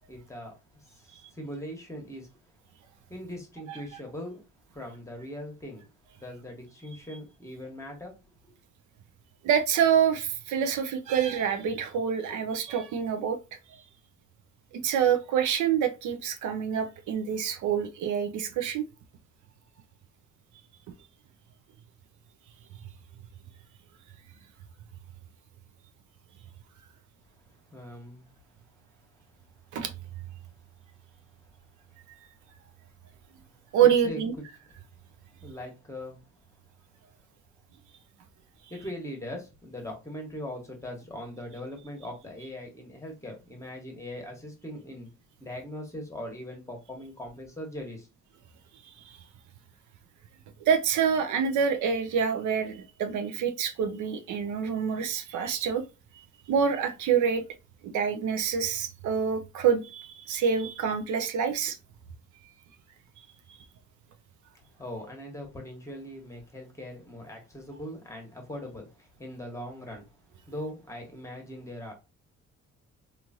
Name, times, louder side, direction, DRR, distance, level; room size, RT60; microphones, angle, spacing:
voice 1, 0.1-0.5 0.8-2.3 3.1-4.4 4.7-5.9 6.2-8.1 8.4-8.5 27.7-28.3 33.8-34.2 35.4-36.2 38.7-45.1 45.4-48.1 64.8-70.1 70.5-71.9, left 1 dB, 10° left, 1.1 m, -40 dB
voice 2, 9.4-13.4 13.7-13.8 14.7-18.9 29.7-29.9 33.7-34.3 48.8-49.2 50.6-55.8 56.5-57.4 57.8-61.8, right 7 dB, 75° right, 0.5 m, -26 dB
3.0 x 2.5 x 2.6 m
cardioid pair, 90°, 30 cm